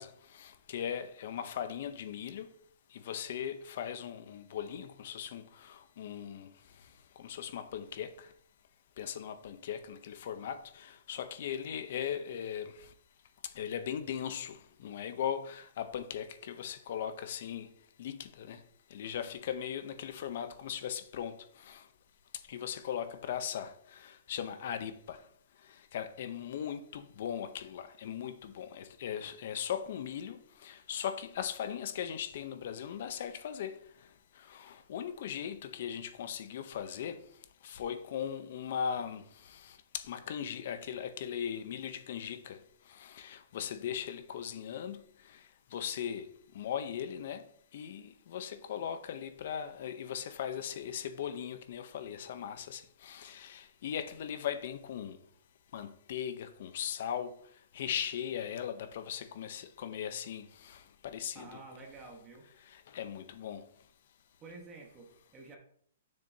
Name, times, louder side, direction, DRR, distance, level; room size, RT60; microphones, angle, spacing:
voice 1, 0.0-2.5 2.9-6.5 7.2-8.3 9.0-12.9 13.6-17.7 18.0-18.6 18.9-21.8 22.5-25.2 25.9-33.7 34.4-37.2 37.6-42.6 42.9-45.0 45.7-46.3 46.5-47.4 47.7-55.2 55.7-57.3 57.7-61.6 62.7-63.6, left 9 dB, 50° left, 0.7 m, -39 dB
voice 2, 61.3-62.5 64.4-65.6, right 3 dB, 20° right, 1.0 m, -50 dB
6.8 x 6.7 x 2.7 m
hypercardioid pair, 165°, 0 cm